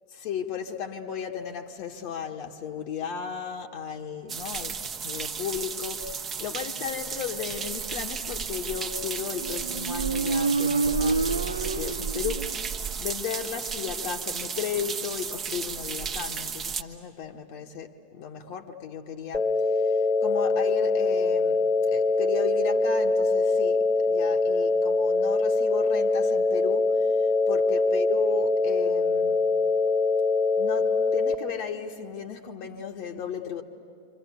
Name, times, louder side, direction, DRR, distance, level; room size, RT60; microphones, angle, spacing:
voice 1, 0.1-29.5 30.6-33.6, left 7 dB, 45° left, 1.3 m, -35 dB
sound 1, 4.3-16.8, right 6 dB, 25° right, 1.1 m, -33 dB
Motorcycle, 9.2-12.8, right 3 dB, 75° right, 0.6 m, -28 dB
sound 2, 19.3-31.3, left 3 dB, 10° left, 1.4 m, -23 dB
27.0 x 26.0 x 8.3 m
figure-of-eight pair, 90°, 0 cm